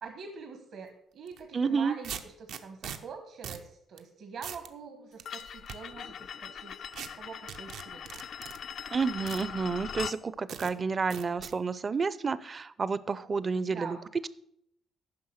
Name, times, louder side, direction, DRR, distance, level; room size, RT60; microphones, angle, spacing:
voice 1, 0.0-6.9 7.1-8.2 13.7-14.1, right 5 dB, 65° right, 5 dB, 1.1 m, -44 dB
sound 1, 1.3-1.4 2.0-3.0 3.4-3.7 4.0-4.1 4.4-4.7 5.2-5.8 6.9-7.1 7.5-8.6 9.3-9.4 10.0-10.1 10.5-10.7 11.1-11.5, right 8 dB, 85° right, 0.7 m, -40 dB
voice 2, 1.5-2.0 8.9-14.0, right 5 dB, 35° right, 17 dB, 0.5 m, -30 dB
sound 2, 5.2-10.2, left 8 dB, 65° left, 0.4 m, -41 dB
9.6 x 5.7 x 6.4 m, 0.76 s
cardioid pair, 90°, 0 cm